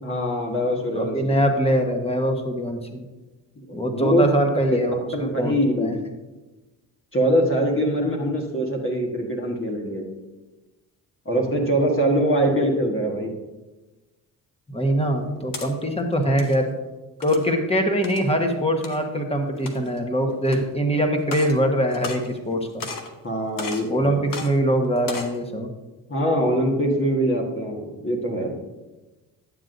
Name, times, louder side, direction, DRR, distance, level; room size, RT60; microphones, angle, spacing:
voice 1, 0.0-1.4 3.7-4.2 4.7-4.8 5.1-6.0 7.1-10.1 11.2-13.3 23.2-24.2 26.1-28.6, equal, 30° left, -1 dB, 1.6 m, -23 dB
voice 2, 0.9-3.0 3.7-5.9 14.7-16.7 17.2-22.8 23.9-25.7, equal, 15° left, 4 dB, 1.3 m, -23 dB
sound 1, 15.2-15.7 16.2-16.6 17.2-17.5 18.0-18.3 18.8-19.0 19.5-20.0 20.5-20.6 21.2-21.6 21.9-22.5 22.8-23.1 23.6-23.9 24.3-24.5 25.0-25.4, left 4 dB, 55° left, 1.2 m, -34 dB
10.5 x 7.5 x 2.7 m, 1.1 s
supercardioid pair, 60°, 39 cm